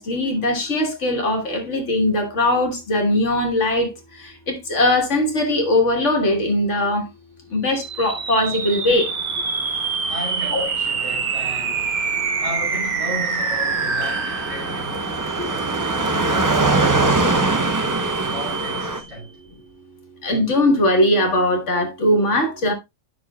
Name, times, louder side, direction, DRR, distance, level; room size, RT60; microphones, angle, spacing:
voice 1, 0.0-3.9 4.5-7.0 7.5-9.1 10.5-10.7 15.4-15.5 20.2-22.7, left 1 dB, 65° left, 1.9 m, -20 dB
sound 1, 7.6-19.2, right 5 dB, 45° right, 1.0 m, -27 dB
Car passing by, 9.1-19.0, right 2 dB, 25° right, 0.5 m, -24 dB
voice 2, 10.1-12.0 12.4-15.0 15.5-17.7 18.2-19.3, equal, 70° right, 4.0 m, -35 dB
10.5 x 6.1 x 2.3 m
omnidirectional pair, 1.4 m